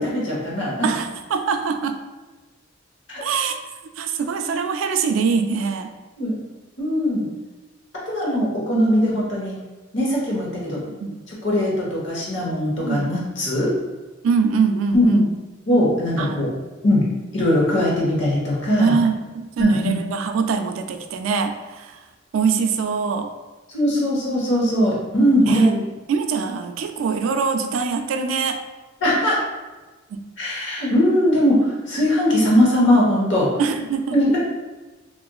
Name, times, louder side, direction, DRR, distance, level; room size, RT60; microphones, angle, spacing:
voice 1, 0.0-0.9 3.1-3.2 6.2-6.4 6.8-7.3 8.1-9.5 9.9-10.8 11.3-13.7 14.9-15.2 15.7-16.5 16.8-17.0 17.3-18.9 19.6-20.0 23.7-25.8 29.0-29.4 30.4-33.5 34.1-34.4, equal, 65° left, -5 dB, 1.0 m, -20 dB
voice 2, 0.8-2.0 3.2-3.6 4.0-5.9 9.0-9.1 11.0-11.2 12.8-13.1 14.2-15.2 16.2-16.5 18.8-21.9 22.3-23.3 25.5-25.8 26.1-28.6 30.1-30.2 33.6-34.2, right 5 dB, 90° right, 6 dB, 0.3 m, -23 dB
3.8 x 2.5 x 2.3 m, 1.2 s
head